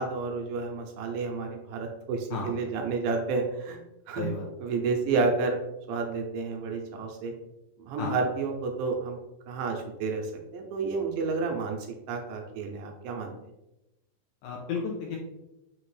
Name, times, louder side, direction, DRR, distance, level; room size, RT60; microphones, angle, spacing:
voice 1, 0.0-3.8 4.1-4.3 4.6-5.6 5.9-7.3 7.8-9.2 9.5-11.8 12.1-13.3, right 4 dB, 80° right, 2 dB, 2.1 m, -30 dB
voice 2, 14.4-15.2, left 5 dB, 80° left, -1 dB, 2.0 m, -32 dB
5.8 x 2.8 x 3.1 m, 0.94 s
omnidirectional pair, 4.2 m